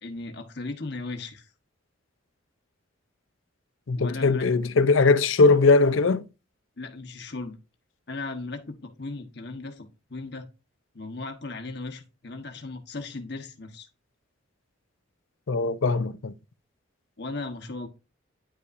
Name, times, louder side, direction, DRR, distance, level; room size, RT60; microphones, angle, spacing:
voice 1, 0.0-1.4 3.9-4.5 6.8-7.5 8.1-10.5 10.9-13.9 17.2-17.9, left 3 dB, 55° left, 1.2 m, -37 dB
voice 2, 3.9-6.2 15.5-16.3, left 3 dB, 75° left, 0.6 m, -20 dB
9.9 x 5.5 x 2.6 m
head